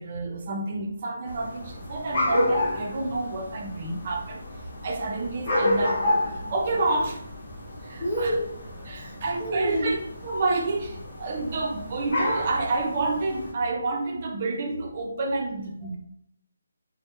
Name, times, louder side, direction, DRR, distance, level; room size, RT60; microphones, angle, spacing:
voice 1, 0.0-4.4 4.8-7.2 7.8-8.4 8.9-10.0 10.2-16.0, right 3 dB, 30° right, 1 dB, 0.4 m, -29 dB
sound 1, 1.3-13.5, left 1 dB, 40° left, 0.9 m, -31 dB
voice 2, 8.0-9.9 15.0-15.1, equal, 5° left, -12 dB, 0.9 m, -30 dB
3.2 x 2.0 x 2.8 m, 0.70 s
hypercardioid pair, 175°, 0 cm